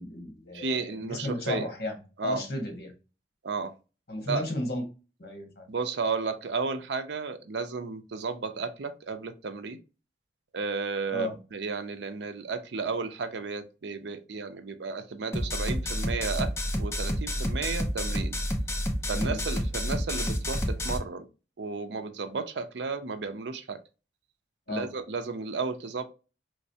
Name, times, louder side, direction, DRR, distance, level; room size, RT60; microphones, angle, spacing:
voice 1, 0.0-2.9 4.1-4.8 5.2-5.7 11.1-11.3 19.1-19.4 24.7-24.9, left 1 dB, 60° left, 1.4 m, -33 dB
voice 2, 0.5-1.7 2.2-2.4 3.4-3.7 4.3-4.4 5.7-9.8 10.5-18.4 19.1-21.3 21.6-23.8 24.7-26.1, right 4 dB, 80° right, 0.5 m, -33 dB
sound 1, 15.3-21.0, equal, 15° left, 0.5 m, -29 dB
3.2 x 3.1 x 2.7 m
head